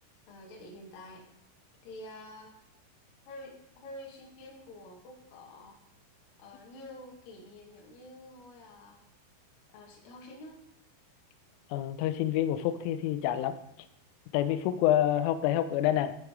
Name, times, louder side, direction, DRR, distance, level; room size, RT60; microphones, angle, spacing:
voice 1, 0.3-1.3 1.8-2.5 3.2-5.8 6.4-9.0 9.7-10.6, left 1 dB, 65° left, -1 dB, 2.4 m, -48 dB
voice 2, 11.7-13.6 14.3-16.2, left 12 dB, 85° left, 10 dB, 3.1 m, -27 dB
8.8 x 8.1 x 3.6 m, 0.78 s
omnidirectional pair, 5.9 m